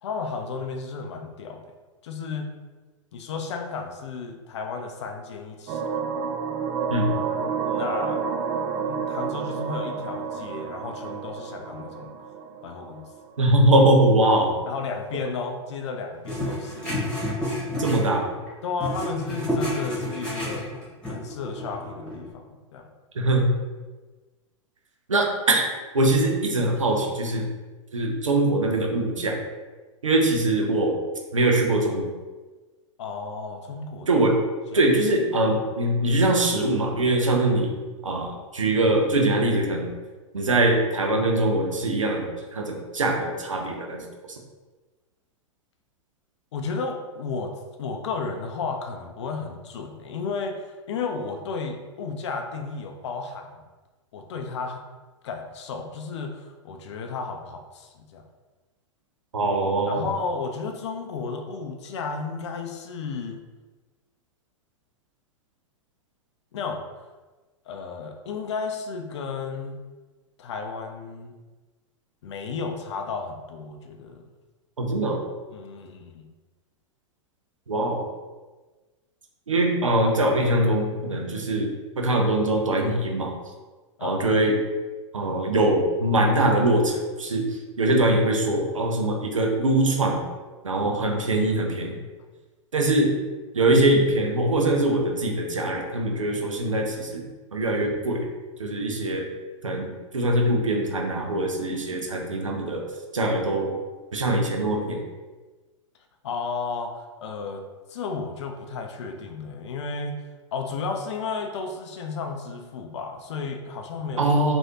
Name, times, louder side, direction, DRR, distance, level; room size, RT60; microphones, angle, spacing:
voice 1, 0.0-1.6 2.0-2.5 3.1-6.0 7.7-8.2 8.9-12.1 12.6-13.1 14.7-17.1 18.6-22.9 33.0-34.2 34.7-34.8 46.5-53.6 54.1-54.8 55.2-58.2 59.9-63.4 66.5-66.8 67.7-69.8 70.4-71.4 72.2-74.3 75.5-76.3 84.0-84.2 106.2-110.2 110.5-114.3, left 4 dB, 65° left, 5 dB, 0.5 m, -33 dB
sound 1, 5.7-13.2, right 6 dB, 35° right, 0.4 m, -30 dB
voice 2, 13.4-14.5 17.8-18.3 23.2-23.5 25.1-25.6 25.9-27.4 27.9-29.4 30.0-31.0 31.3-32.1 34.1-34.4 34.7-37.7 38.0-39.9 40.3-44.0 59.3-60.1 74.8-75.2 77.7-78.0 79.5-81.7 82.0-83.3 84.0-84.6 85.1-87.5 87.8-90.2 90.6-92.0 92.7-93.1 93.5-97.2 97.5-98.3 98.6-99.3 99.6-102.8 103.1-103.7 104.1-105.0 114.2-114.6, right 1 dB, 90° right, 1 dB, 0.6 m, -22 dB
sound 2, 16.2-18.5 18.8-22.3, left 1 dB, 5° left, 1.3 m, -30 dB
3.1 x 2.6 x 2.7 m, 1.3 s
hypercardioid pair, 105°, 16 cm